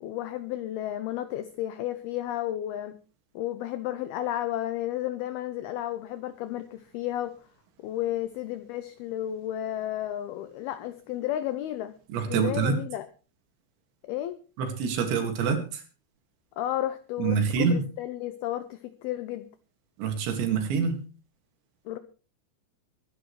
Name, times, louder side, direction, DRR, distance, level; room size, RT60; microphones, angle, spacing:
voice 1, 0.0-2.9 3.4-7.3 7.8-11.9 12.3-13.1 14.0-14.4 16.6-19.5 21.9-22.0, left 13 dB, 85° left, 12 dB, 2.2 m, -32 dB
voice 2, 12.1-12.8 14.6-15.8 17.2-17.8 20.0-21.0, right 6 dB, 70° right, 5 dB, 4.4 m, -26 dB
23.5 x 10.5 x 3.2 m, 0.36 s
omnidirectional pair, 5.4 m